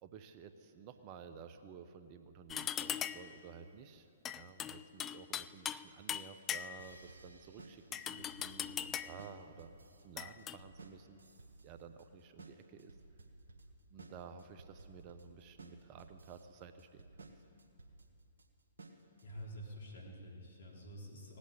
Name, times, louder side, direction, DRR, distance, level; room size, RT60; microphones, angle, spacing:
voice 1, 0.0-9.7 10.0-11.2 11.6-13.0 13.9-17.3, right 7 dB, 35° right, 9 dB, 0.9 m, -53 dB
sound 1, 2.5-3.4 4.3-5.8 6.1-7.0 7.9-9.3 10.2-10.6, left 9 dB, 20° left, 0.4 m, -40 dB
sound 2, 6.8-19.7, right 2 dB, 75° right, 1.6 m, -57 dB
voice 2, 19.2-21.4, equal, 65° left, -1 dB, 3.7 m, -48 dB
18.0 x 8.3 x 9.6 m, 2.5 s
figure-of-eight pair, 125°, 0 cm